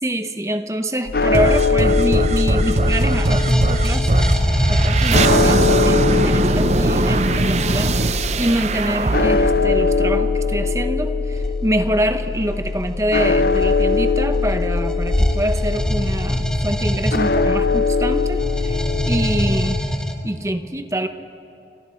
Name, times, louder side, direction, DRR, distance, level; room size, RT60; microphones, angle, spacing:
voice 1, 0.0-4.2 4.7-19.8 20.2-21.1, right 1 dB, 15° right, 8 dB, 0.9 m, -25 dB
sound 1, 1.1-19.8, left 4 dB, 55° left, 0.6 m, -21 dB
sound 2, 1.3-10.7, right 3 dB, 40° right, 0.5 m, -21 dB
sound 3, 2.0-6.0 11.3-11.6 12.4-20.1, equal, 5° left, 1.5 m, -23 dB
29.0 x 26.5 x 4.5 m, 2.6 s
head